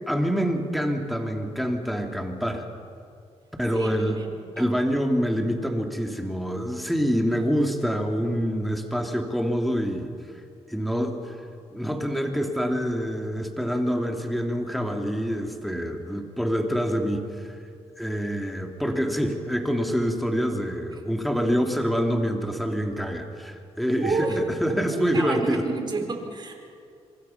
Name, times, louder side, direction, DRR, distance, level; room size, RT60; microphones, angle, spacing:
voice 1, 0.1-2.7 3.6-4.2 4.6-10.1 10.7-11.4 11.7-17.5 18.0-25.6, equal, ahead, 3 dB, 2.8 m, -26 dB
voice 2, 3.7-4.8 20.9-21.0 24.0-24.4 24.9-26.5, right 3 dB, 40° right, 3 dB, 4.4 m, -30 dB
25.5 x 24.5 x 5.9 m, 2.4 s
cardioid pair, 90°, 11 cm